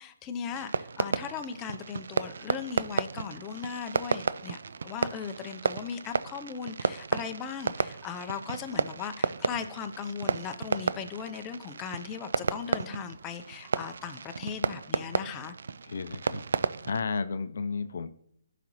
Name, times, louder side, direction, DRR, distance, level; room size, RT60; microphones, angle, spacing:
voice 1, 0.0-15.5, left 7 dB, 20° left, 6 dB, 0.5 m, -38 dB
Fireworks, 0.5-17.0, right 5 dB, 70° right, 0.3 m, -33 dB
voice 2, 15.8-18.1, left 4 dB, 65° left, 11 dB, 0.5 m, -33 dB
14.0 x 5.0 x 3.0 m, 0.71 s
hypercardioid pair, 150°, 0 cm